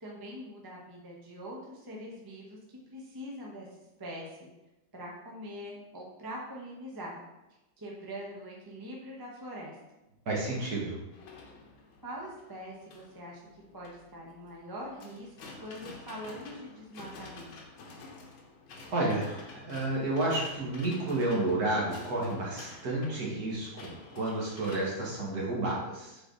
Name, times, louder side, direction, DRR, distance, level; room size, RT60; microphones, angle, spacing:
voice 1, 0.0-3.7 4.0-4.4 4.9-7.2 7.8-9.8 12.0-13.4 13.7-15.3 15.6-17.5, equal, 15° right, -3 dB, 0.8 m, -43 dB
voice 2, 10.3-11.0 18.9-26.2, right 2 dB, 50° right, -4 dB, 2.0 m, -31 dB
sound 1, 11.1-24.8, left 3 dB, 80° left, 1.8 m, -50 dB
7.1 x 4.6 x 3.9 m, 0.99 s
omnidirectional pair, 2.1 m